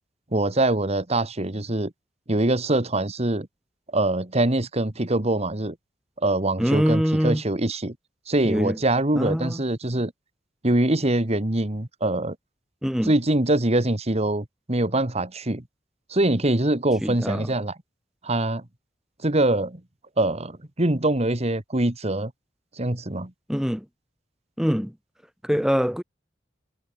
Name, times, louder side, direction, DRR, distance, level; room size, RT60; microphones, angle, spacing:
voice 1, 0.3-1.9 2.3-3.5 3.9-5.8 6.2-8.0 8.3-10.1 10.6-12.4 13.1-15.6 16.1-17.8 18.2-18.6 19.2-19.8 20.2-22.3 22.8-23.3, right 1 dB, 35° right, 1.8 m, -23 dB
voice 2, 6.6-7.4 8.5-8.8 9.2-9.6 12.8-13.1 17.0-17.5 23.5-23.9 24.6-24.9 25.4-26.0, equal, 5° right, 1.8 m, -24 dB
head